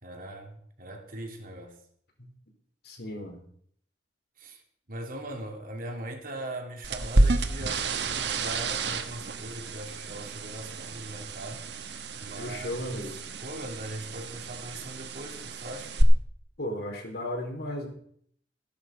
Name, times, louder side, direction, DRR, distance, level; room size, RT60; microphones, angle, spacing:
voice 1, 0.0-1.8 4.4-4.6 4.9-11.6 12.2-13.0 13.4-15.9, right 1 dB, 50° right, 2.9 m, -40 dB
voice 2, 2.8-3.4 12.4-13.2 16.6-17.9, left 1 dB, 65° left, 4.2 m, -35 dB
sound 1, 6.8-16.0, right 2 dB, 70° right, 1.4 m, -30 dB
15.0 x 12.0 x 5.1 m
head